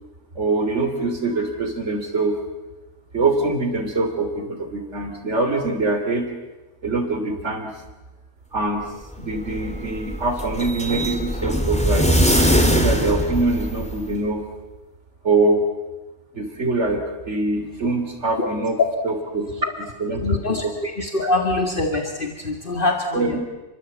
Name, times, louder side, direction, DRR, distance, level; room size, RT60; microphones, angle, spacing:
voice 1, 0.3-2.4 3.1-6.3 6.8-7.7 8.5-8.8 9.2-12.1 12.6-14.4 15.2-15.6 16.3-18.8 19.0-20.4 20.6-20.7 23.1-23.4, right 3 dB, 80° right, 6 dB, 3.5 m, -23 dB
sound 1, 9.1-14.2, equal, 5° left, 3.1 m, -21 dB
voice 2, 20.2-23.4, left 2 dB, 50° left, 4 dB, 2.1 m, -24 dB
30.0 x 23.0 x 8.5 m, 1.1 s
omnidirectional pair, 1.2 m